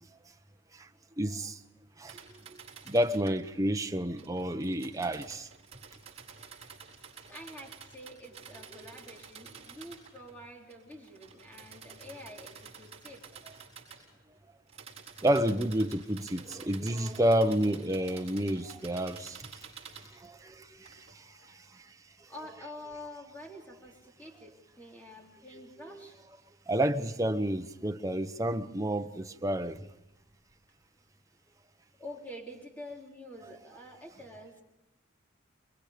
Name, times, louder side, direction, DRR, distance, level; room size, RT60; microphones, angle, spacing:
voice 1, 1.2-1.6 2.0-5.5 15.2-19.5 20.0-21.9 25.9-26.0 26.7-29.9, right 1 dB, 15° right, 0.9 m, -30 dB
sound 1, 2.0-3.6 4.2-10.4 10.7-14.0 14.7-20.1 20.8-21.2, right 6 dB, 30° right, 6.8 m, -50 dB
voice 2, 7.3-13.2 21.2-21.8 22.3-26.2 32.0-34.6, left 1 dB, 10° left, 3.8 m, -47 dB
29.0 x 22.0 x 5.1 m
head